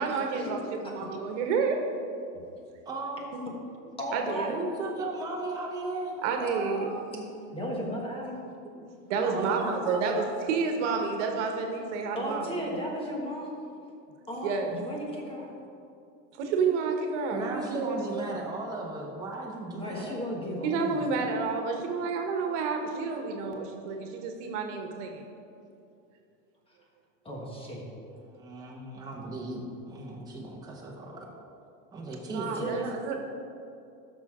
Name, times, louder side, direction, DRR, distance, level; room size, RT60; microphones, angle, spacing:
voice 1, 0.0-1.8 4.1-4.6 6.2-7.2 9.1-12.6 14.4-14.8 16.3-18.2 20.6-25.2 32.3-33.2, right 5 dB, 60° right, 3 dB, 1.3 m, -30 dB
voice 2, 2.8-3.2 4.5-6.9 9.1-10.3 17.3-20.2 28.2-31.2 31.9-32.8, right 2 dB, 10° right, -3 dB, 1.2 m, -36 dB
voice 3, 4.0-4.5 7.5-8.4 12.1-13.5 14.3-15.5 19.7-21.3 27.2-27.8 32.6-32.9, equal, 15° left, -2 dB, 1.3 m, -35 dB
12.5 x 6.2 x 3.7 m, 2.6 s
supercardioid pair, 150°, 40 cm